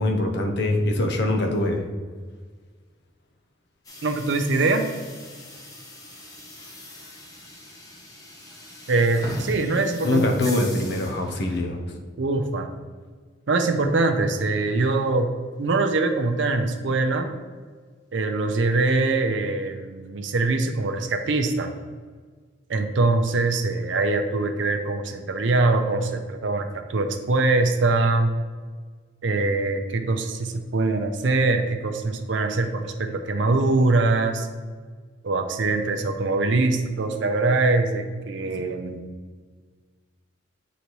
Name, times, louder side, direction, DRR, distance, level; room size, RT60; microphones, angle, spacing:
voice 1, 0.0-1.8 10.0-11.8, left 1 dB, 60° left, 3 dB, 0.8 m, -23 dB
sound 1, 3.8-11.6, left 1 dB, 20° left, 0.9 m, -40 dB
voice 2, 4.0-4.9 8.9-10.3 12.2-12.7 13.5-17.3 18.1-21.7 22.7-28.3 29.2-34.5 35.2-39.0, right 3 dB, 65° right, 6 dB, 0.5 m, -23 dB
8.0 x 4.0 x 3.1 m, 1.5 s
head